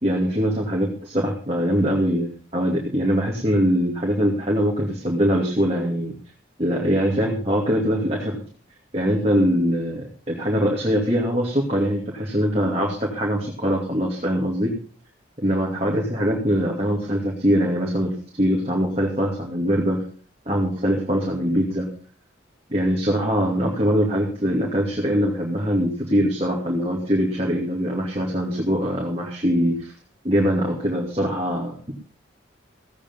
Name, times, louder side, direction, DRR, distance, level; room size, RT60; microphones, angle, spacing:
voice 1, 0.0-6.1 6.6-8.4 8.9-14.8 15.4-20.0 20.5-21.9 22.7-29.9 30.2-31.9, equal, 30° right, -2 dB, 2.6 m, -22 dB
16.5 x 8.7 x 5.5 m, 0.41 s
head